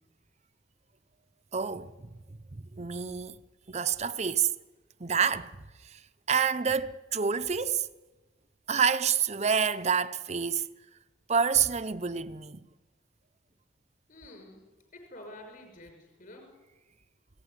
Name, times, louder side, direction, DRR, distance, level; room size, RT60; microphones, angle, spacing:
voice 1, 1.5-2.1 2.5-3.4 3.7-4.5 5.0-5.6 5.8-6.0 6.3-7.9 8.7-10.7 11.3-12.7, right 6 dB, 35° right, 0.8 m, -28 dB
voice 2, 14.1-14.6 14.9-16.5, left 1 dB, 45° left, 6.3 m, -48 dB
29.0 x 18.0 x 9.8 m
head